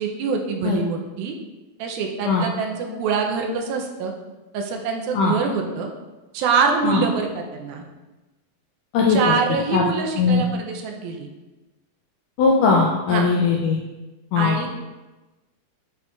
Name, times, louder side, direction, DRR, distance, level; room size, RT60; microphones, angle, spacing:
voice 1, 0.0-1.4 1.8-4.1 4.5-5.9 6.3-7.8 9.1-11.3 13.1-13.3 14.4-14.8, right 5 dB, 85° right, 2 dB, 2.5 m, -25 dB
voice 2, 8.9-9.4 9.7-9.8 10.2-10.4 12.4-13.8 14.3-14.6, left 4 dB, 85° left, -1 dB, 1.8 m, -19 dB
8.2 x 5.3 x 2.5 m, 1.1 s
omnidirectional pair, 4.3 m